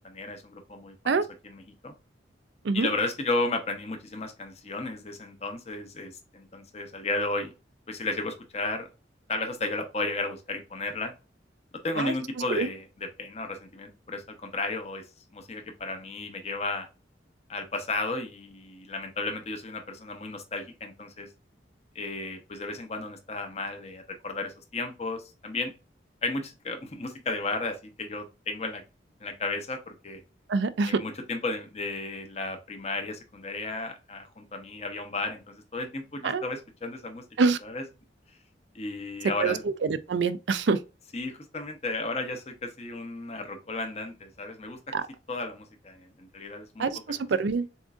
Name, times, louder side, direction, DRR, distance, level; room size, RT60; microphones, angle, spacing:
voice 1, 0.0-1.9 2.7-7.5 7.9-8.9 9.3-11.1 11.8-15.0 15.3-16.9 17.5-21.3 21.9-25.7 26.2-28.8 29.2-30.2 30.9-37.2 37.6-37.8 38.7-39.6 41.1-44.8 45.3-47.3, left 2 dB, 35° left, 0.8 m, -34 dB
voice 2, 30.5-31.0 36.2-36.4 37.4-37.6 39.4-39.6 39.8-40.8 44.9-45.0 46.8-47.7, right 4 dB, 70° right, 0.4 m, -25 dB
7.1 x 2.6 x 2.4 m
head